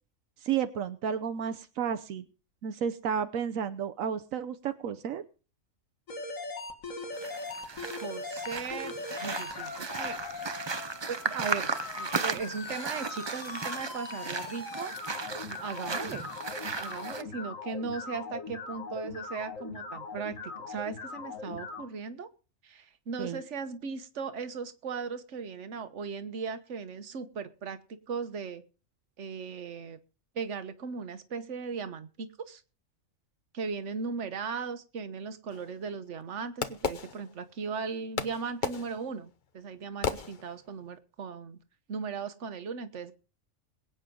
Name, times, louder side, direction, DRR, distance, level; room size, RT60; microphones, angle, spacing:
voice 1, 0.4-2.2 2.6-5.2 23.2-23.4, right 8 dB, 85° right, 11 dB, 1.2 m, -32 dB
sound 1, 6.1-21.8, left 4 dB, 80° left, 2.2 m, -40 dB
sound 2, 7.1-17.2, right 4 dB, 30° right, 0.5 m, -36 dB
voice 2, 8.0-10.2 11.1-11.7 12.0-14.9 15.5-16.3 16.8-22.3 22.6-27.8 28.1-28.6 29.2-30.0 30.3-32.6 33.5-41.6 41.9-43.1, right 5 dB, 65° right, 10 dB, 1.4 m, -37 dB
Fireworks, 35.5-37.7 38.2-40.9, left 5 dB, 40° left, 1.0 m, -36 dB
22.5 x 9.0 x 3.8 m, 0.36 s
omnidirectional pair, 1.3 m